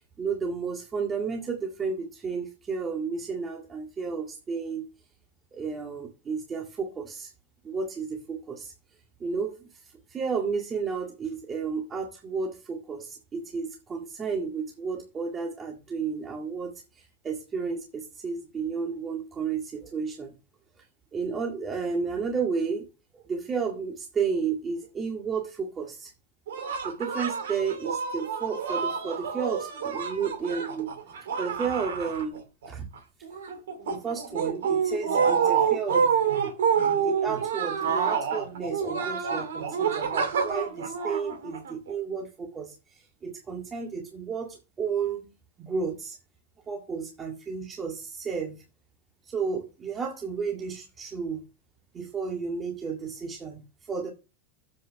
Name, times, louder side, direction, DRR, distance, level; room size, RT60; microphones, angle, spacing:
voice 1, 0.2-4.8 5.5-7.3 7.6-8.7 9.2-20.3 21.1-22.8 23.1-26.1 26.8-30.9 31.4-32.4 32.7-32.9 33.9-36.1 37.0-45.3 45.6-46.2 46.7-48.6 49.3-51.4 51.9-54.1, right 5 dB, 25° right, 1 dB, 1.9 m, -32 dB
sound 1, 26.5-32.7 33.0-41.9, right 6 dB, 85° right, 2.3 m, -28 dB
7.8 x 5.5 x 6.4 m, 0.31 s
hypercardioid pair, 105°, 0 cm